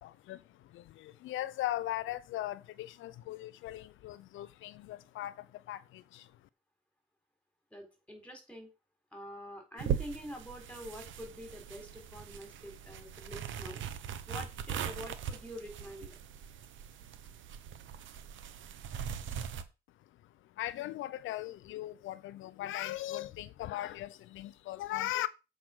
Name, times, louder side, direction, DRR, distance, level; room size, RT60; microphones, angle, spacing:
voice 1, 0.0-6.5 20.0-25.3, left 14 dB, 80° left, 0.5 m, -39 dB
voice 2, 7.7-8.7 9.1-13.8 14.3-16.2, equal, 5° left, 4.2 m, -46 dB
sound 1, 9.8-19.6, right 8 dB, 75° right, 1.0 m, -40 dB
7.6 x 4.9 x 6.2 m
cardioid pair, 90°, 20 cm